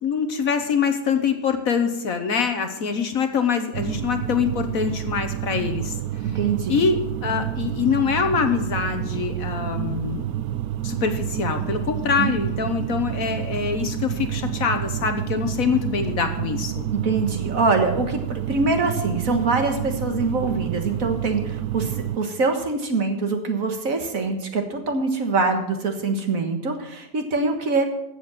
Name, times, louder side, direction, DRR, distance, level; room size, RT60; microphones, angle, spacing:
voice 1, 0.0-5.9 6.7-10.2 10.8-16.9, left 6 dB, 55° left, 7 dB, 1.4 m, -24 dB
sound 1, 3.7-22.2, right 12 dB, 70° right, 1.0 m, -29 dB
voice 2, 6.3-6.8 12.2-12.4 16.9-27.8, right 3 dB, 55° right, 5 dB, 1.8 m, -24 dB
14.0 x 7.8 x 6.1 m, 0.87 s
omnidirectional pair, 1.8 m